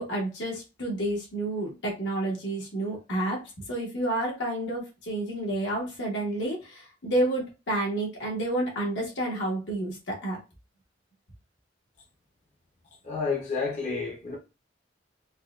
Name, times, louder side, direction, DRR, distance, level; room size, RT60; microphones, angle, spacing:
voice 1, 0.0-10.4, right 1 dB, 75° left, 1.2 m, -30 dB
voice 2, 13.0-14.4, left 4 dB, 40° left, 0.7 m, -30 dB
4.1 x 2.3 x 2.4 m
head